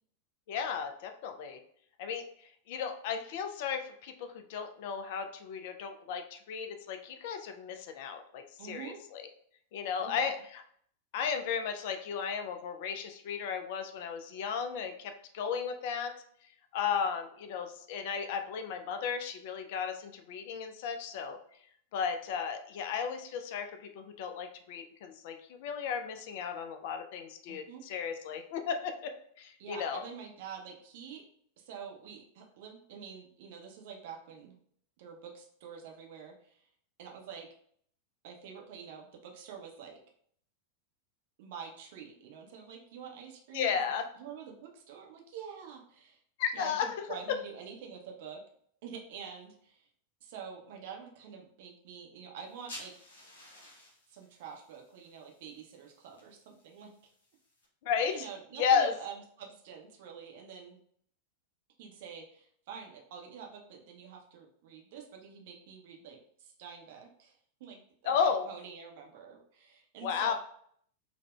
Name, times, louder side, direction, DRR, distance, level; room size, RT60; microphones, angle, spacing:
voice 1, 0.5-1.6 2.0-2.2 2.7-9.2 9.7-10.3 11.1-16.1 16.7-21.4 21.9-30.0 43.5-44.1 46.4-47.0 57.8-58.3 58.6-58.9 68.0-68.5 70.0-70.3, left 7 dB, 50° left, 6 dB, 0.3 m, -34 dB
voice 2, 8.6-9.0 10.0-10.3 27.5-27.8 29.6-31.2 31.6-34.6 35.0-36.7 37.0-37.5 38.2-40.0 41.4-43.8 44.2-46.2 46.5-48.4 48.8-49.9 50.2-52.9 54.1-56.9 58.1-60.8 61.8-70.3, right 7 dB, 50° right, 2 dB, 0.5 m, -47 dB
sound 1, 52.4-57.6, left 1 dB, 70° left, 0.7 m, -53 dB
3.5 x 2.1 x 2.2 m, 0.63 s
figure-of-eight pair, 90°, 0 cm